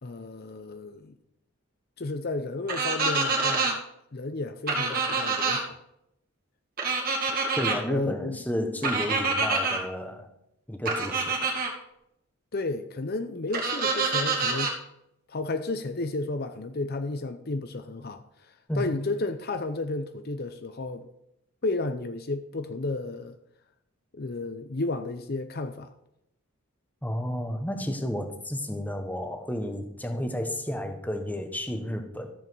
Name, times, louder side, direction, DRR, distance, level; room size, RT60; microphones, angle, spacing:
voice 1, 0.0-1.1 2.0-3.8 4.1-5.8 7.9-8.4 12.5-14.8 15.3-21.1 21.6-23.4 24.1-25.9, left 2 dB, 45° left, 0.6 m, -32 dB
sound 1, 2.7-3.7 4.7-5.6 6.8-7.8 8.8-9.8 10.8-11.7 13.5-14.7, right 4 dB, 40° right, 2.3 m, -26 dB
voice 2, 7.6-10.3 10.7-11.5 18.7-19.0 27.0-32.3, equal, 5° left, 1.1 m, -32 dB
13.5 x 7.4 x 4.7 m
head